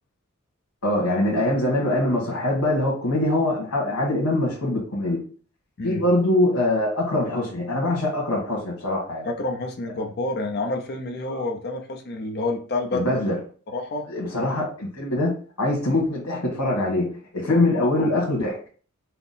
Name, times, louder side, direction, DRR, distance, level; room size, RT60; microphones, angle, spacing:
voice 1, 0.8-5.2 5.8-9.3 11.3-11.4 12.9-13.4 14.1-15.3 15.6-18.6, left 1 dB, 85° left, 1.4 m, -23 dB
voice 2, 9.2-13.2 13.7-14.0 17.5-18.1, left 2 dB, 50° left, 0.6 m, -29 dB
5.7 x 2.0 x 4.1 m
head